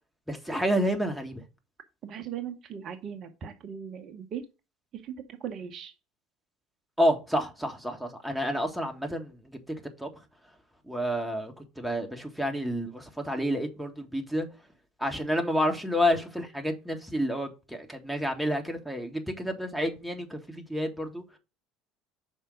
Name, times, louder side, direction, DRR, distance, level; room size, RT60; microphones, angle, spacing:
voice 1, 0.3-1.4 7.0-9.4 10.0-10.1 10.9-14.5 15.0-21.2, equal, ahead, 1.5 m, -29 dB
voice 2, 2.0-4.4 5.0-5.9, right 8 dB, 45° right, 0.8 m, -38 dB
5.5 x 4.5 x 5.0 m
figure-of-eight pair, 60°, 0 cm